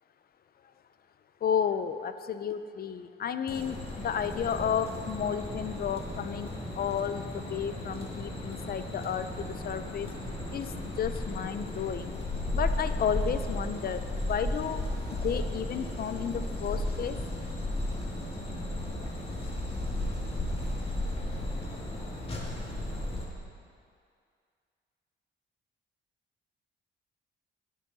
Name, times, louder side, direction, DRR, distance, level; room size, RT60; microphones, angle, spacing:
voice 1, 1.4-6.5 6.8-10.1 10.5-12.1 12.5-17.2, left 8 dB, 50° left, 11 dB, 0.6 m, -32 dB
sound 1, 3.5-23.3, left 1 dB, 30° left, 2.1 m, -35 dB
17.0 x 6.3 x 4.1 m, 2.3 s
cardioid pair, 90°, 20 cm